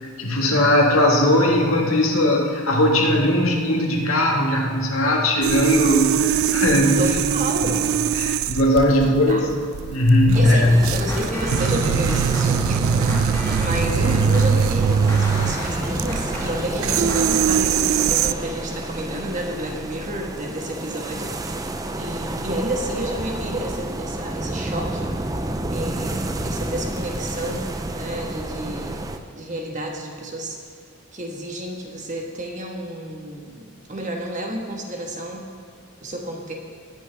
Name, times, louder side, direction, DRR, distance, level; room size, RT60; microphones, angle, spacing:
voice 1, 0.2-7.0 8.2-9.5 9.9-10.7, left 1 dB, 90° left, 0 dB, 1.8 m, -19 dB
sound 1, 5.4-18.3, right 7 dB, 85° right, 0.3 m, -22 dB
voice 2, 7.0-7.9 9.0-9.4 10.3-21.7 22.0-25.1 25.7-29.0 29.3-30.6 31.1-35.5 36.0-36.5, right 1 dB, 35° right, 1 dB, 1.4 m, -30 dB
sound 2, 10.3-29.2, right 1 dB, 15° right, 0.5 m, -30 dB
sound 3, 10.5-17.3, equal, 15° left, 2.2 m, -32 dB
19.0 x 8.8 x 3.5 m, 2.4 s
head